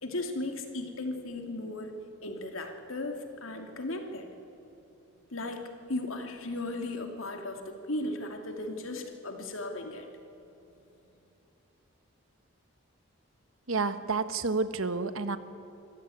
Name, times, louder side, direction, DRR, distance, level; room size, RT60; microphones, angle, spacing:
voice 1, 0.0-1.9 2.2-4.3 5.3-10.1, left 2 dB, 75° left, 4 dB, 2.6 m, -36 dB
voice 2, 13.7-15.4, right 4 dB, 80° right, 12 dB, 1.2 m, -30 dB
25.0 x 15.0 x 9.2 m, 3.0 s
head